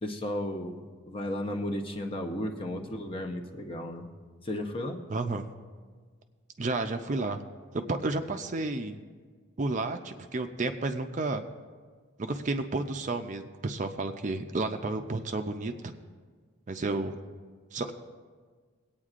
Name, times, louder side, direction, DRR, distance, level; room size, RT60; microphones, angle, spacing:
voice 1, 0.0-4.1 4.4-5.0, left 1 dB, 25° left, 3 dB, 0.7 m, -34 dB
voice 2, 5.1-5.4 6.6-7.4 7.7-9.0 9.6-11.4 12.2-15.9 16.7-17.2 17.7-17.9, right 2 dB, 35° right, 6 dB, 0.5 m, -31 dB
22.0 x 8.8 x 2.5 m, 1.5 s
head